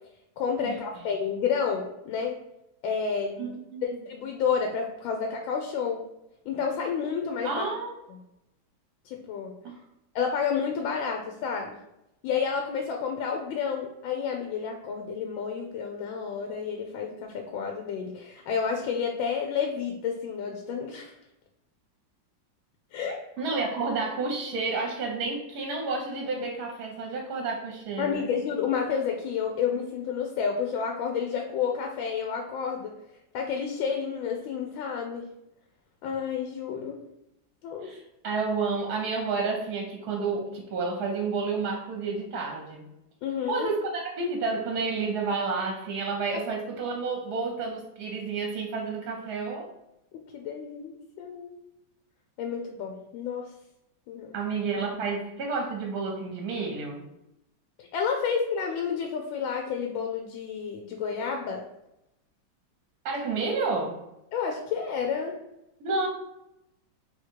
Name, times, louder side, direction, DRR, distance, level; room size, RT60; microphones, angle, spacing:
voice 1, 0.4-2.4 2.8-3.5 4.1-6.0 6.5-7.6 8.1-8.2 9.0-9.5 10.1-11.7 12.2-21.2 22.9-23.2 28.0-32.9 33.3-35.2 36.0-37.0 37.6-37.9 43.2-43.7 46.3-46.4 50.3-51.6 52.4-53.5 54.1-54.4 57.8-61.6 64.3-65.3, left 6 dB, 80° left, 2 dB, 1.3 m, -30 dB
voice 2, 3.4-4.0 7.4-8.0 9.6-9.8 23.4-28.3 37.8-42.8 43.5-49.7 54.3-57.1 63.0-64.0 65.8-66.1, right 4 dB, 65° right, 1 dB, 1.1 m, -30 dB
3.5 x 3.1 x 4.5 m, 0.87 s
omnidirectional pair, 2.2 m